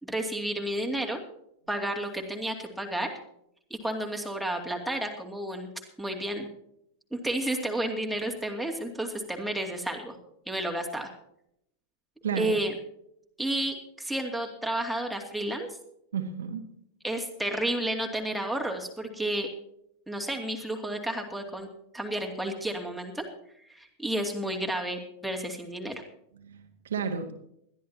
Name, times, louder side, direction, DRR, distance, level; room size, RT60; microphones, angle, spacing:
voice 1, 0.0-1.2 1.7-3.1 3.7-5.7 6.0-6.5 7.1-10.2 10.5-11.1 12.4-12.7 13.4-15.8 17.0-19.5 20.1-21.7 21.9-23.2 23.7-26.0, right 1 dB, ahead, 2.4 m, -31 dB
voice 2, 12.2-12.6 16.1-16.7 26.4-27.3, right 6 dB, 65° right, 1.6 m, -32 dB
21.0 x 13.5 x 2.9 m
figure-of-eight pair, 90°, 0 cm